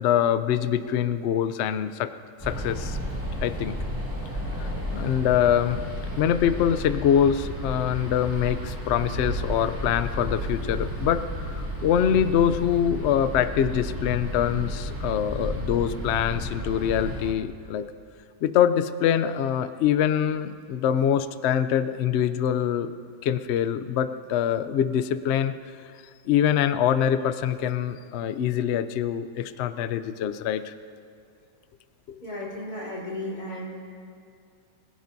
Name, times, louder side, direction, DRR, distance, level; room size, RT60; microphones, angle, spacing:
voice 1, 0.0-2.1 2.4-3.0 3.4-3.8 4.6-5.8 6.2-17.9 18.4-22.9 23.2-25.5 26.3-30.7 32.1-32.2, left 9 dB, 90° left, 11 dB, 0.5 m, -24 dB
sound 1, 2.4-17.3, equal, 10° right, 2.1 m, -32 dB
voice 2, 32.2-33.8, left 1 dB, 55° left, -6 dB, 4.8 m, -34 dB
24.5 x 16.5 x 2.7 m, 2.4 s
omnidirectional pair, 1.8 m